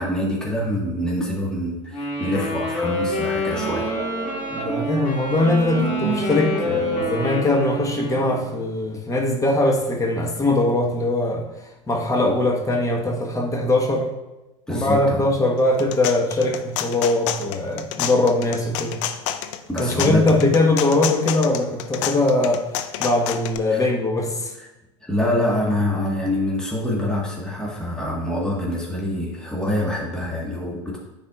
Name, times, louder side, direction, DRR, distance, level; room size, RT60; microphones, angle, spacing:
voice 1, 0.0-3.9 14.7-15.2 19.7-20.4 23.7-23.8 24.6-24.7 25.0-31.0, left 1 dB, 5° left, -4 dB, 1.5 m, -25 dB
Wind instrument woodwind instrument, 1.9-8.4, left 2 dB, 50° left, 2.2 m, -28 dB
sound 1, 3.4-8.5, right 6 dB, 60° right, 0.5 m, -31 dB
voice 2, 4.5-11.4 11.9-14.1 14.7-19.0 19.8-22.6 23.0-24.5, left 2 dB, 20° left, 0 dB, 1.3 m, -21 dB
sound 2, 15.6-23.6, left 11 dB, 70° left, 0.5 m, -29 dB
9.7 x 4.2 x 2.4 m, 1.0 s
hypercardioid pair, 85°, 17 cm